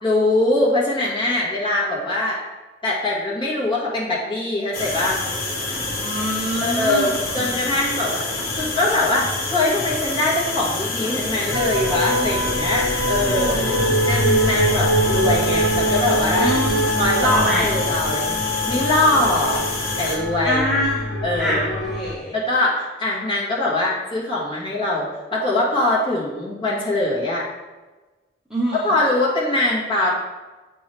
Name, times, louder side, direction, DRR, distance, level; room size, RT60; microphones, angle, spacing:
voice 1, 0.0-2.4 2.8-5.2 6.6-8.2 8.6-13.6 14.0-16.5 17.0-18.4 18.7-19.6 20.0-20.6 21.2-21.7 22.3-27.5 28.8-30.1, left 2 dB, 25° left, -6 dB, 1.8 m, -22 dB
sound 1, 4.7-20.2, left 2 dB, 50° left, 1.4 m, -27 dB
voice 2, 6.0-7.4 13.2-14.0 16.4-16.9 17.2-17.7 20.4-22.3 28.5-28.8, equal, 5° right, -7 dB, 1.0 m, -25 dB
sound 2, 11.5-22.1, equal, 80° left, 1.2 m, -23 dB
7.9 x 4.6 x 3.3 m, 1.2 s
head